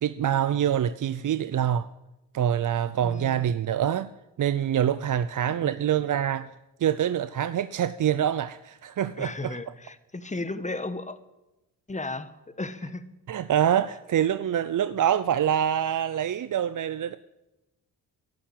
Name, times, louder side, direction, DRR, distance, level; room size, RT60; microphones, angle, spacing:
voice 1, 0.0-1.9 2.3-4.1 4.4-6.5 6.8-9.6 13.3-17.2, right 10 dB, 50° right, 0.6 m, -25 dB
voice 2, 3.0-3.4 5.5-5.7 9.2-11.2 11.9-13.0, left 2 dB, 20° left, 1.2 m, -35 dB
11.5 x 11.5 x 8.8 m
cardioid pair, 70°, 40 cm